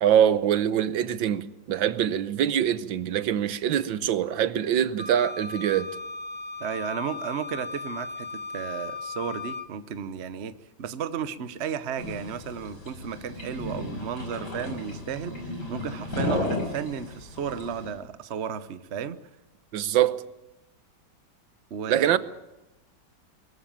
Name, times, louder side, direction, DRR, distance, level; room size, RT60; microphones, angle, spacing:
voice 1, 0.0-5.9 19.7-20.2 21.9-22.2, right 10 dB, 85° right, 1.7 m, -24 dB
Wind instrument woodwind instrument, 5.0-9.7, left 4 dB, 30° left, 3.1 m, -37 dB
voice 2, 6.6-8.3 8.5-19.2 21.7-22.2, right 7 dB, 45° right, 0.9 m, -34 dB
sound 1, 12.0-17.9, left 2 dB, 60° left, 6.6 m, -34 dB
23.0 x 14.5 x 9.1 m
omnidirectional pair, 2.0 m